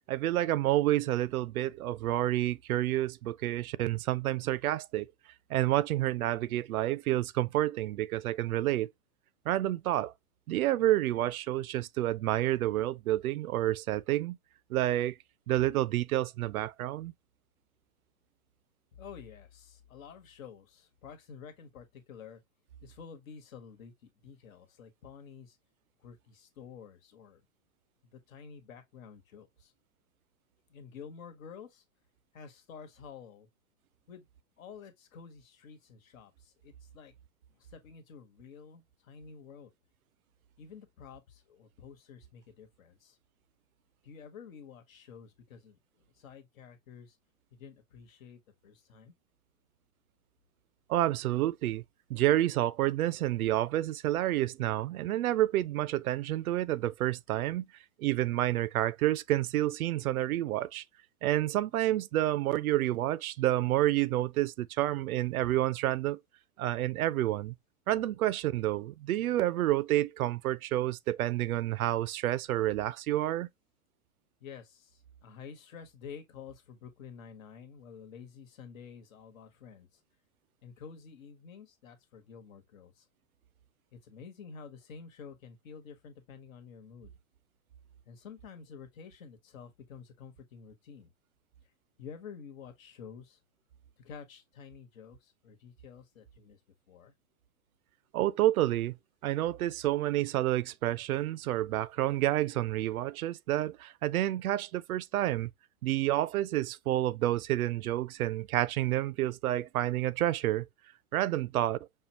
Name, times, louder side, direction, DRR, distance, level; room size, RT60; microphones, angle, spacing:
voice 1, 0.1-5.1 5.5-8.9 9.5-10.1 10.5-14.4 14.7-15.2 15.5-17.1 50.9-51.8 52.1-57.7 58.0-60.8 61.2-66.2 66.6-67.5 67.9-73.5 98.1-99.0 99.2-105.5 105.8-110.7 111.1-111.8, right 14 dB, 85° right, 0.5 m, -29 dB
voice 2, 18.9-22.4 22.8-25.6 26.0-27.4 28.1-29.7 30.7-31.8 32.3-33.5 34.1-34.3 34.6-37.1 37.6-39.7 40.6-43.2 44.0-45.8 46.2-47.2 47.5-49.1 74.4-79.9 80.6-83.0 83.9-87.1 88.1-91.1 92.0-93.4 94.0-96.6 96.9-97.1, left 6 dB, 70° left, 1.3 m, -50 dB
5.4 x 2.2 x 2.8 m
hypercardioid pair, 140°, 42 cm